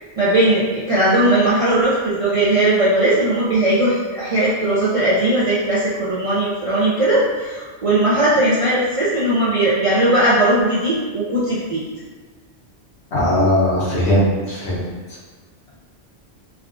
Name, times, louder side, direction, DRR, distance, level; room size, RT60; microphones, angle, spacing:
voice 1, 0.2-11.8, right 1 dB, 55° right, -9 dB, 0.4 m, -18 dB
voice 2, 13.1-14.8, left 1 dB, 75° left, -7 dB, 1.2 m, -18 dB
3.4 x 2.2 x 2.4 m, 1.4 s
omnidirectional pair, 1.1 m